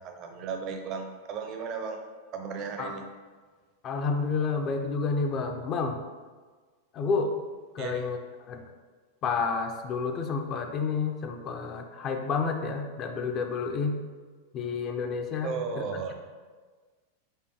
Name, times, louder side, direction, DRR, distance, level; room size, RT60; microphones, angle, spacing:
voice 1, 0.0-2.0 2.3-3.0 7.8-8.0 15.4-16.1, right 5 dB, 35° right, 4 dB, 0.5 m, -35 dB
voice 2, 3.8-6.0 6.9-7.3 7.7-8.6 9.2-14.0 14.5-15.8, left 4 dB, 30° left, 4 dB, 0.3 m, -30 dB
4.8 x 2.2 x 2.8 m, 1.4 s
figure-of-eight pair, 90°, 0 cm